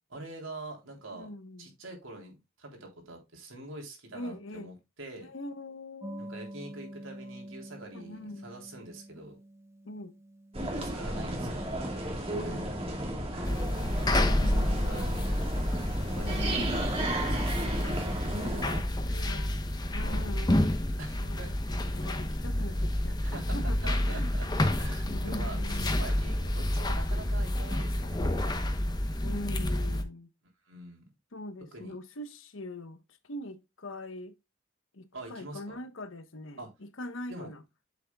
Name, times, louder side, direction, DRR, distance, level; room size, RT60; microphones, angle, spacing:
voice 1, 0.1-1.3 1.6-5.3 6.2-9.4 10.7-11.7 12.4-12.8 13.3-13.6 14.3-15.2 16.1-17.8 18.6-18.8 19.1-19.4 21.0-21.5 22.6-22.7 23.2-28.5 30.7-31.0 31.7-31.9 35.1-35.8 36.6-36.7 37.3-37.5, right 2 dB, 85° right, 3.5 m, -45 dB
voice 2, 1.1-1.8 4.1-4.7 5.2-6.2 7.9-8.5 9.8-10.2 11.1-11.3 12.3-12.7 13.5-15.2 16.2-16.8 18.3-18.7 19.0-19.5 19.9-20.6 21.2-24.3 25.1-26.0 29.2-30.3 31.3-33.0 33.2-34.4 34.9-37.6, left 1 dB, 85° left, 1.1 m, -42 dB
sound 1, 6.0-12.2, right 1 dB, 15° right, 1.3 m, -47 dB
sound 2, 10.5-18.8, right 1 dB, 30° right, 2.1 m, -33 dB
sound 3, 13.4-30.0, left 1 dB, 20° left, 0.9 m, -29 dB
8.5 x 7.2 x 2.3 m
head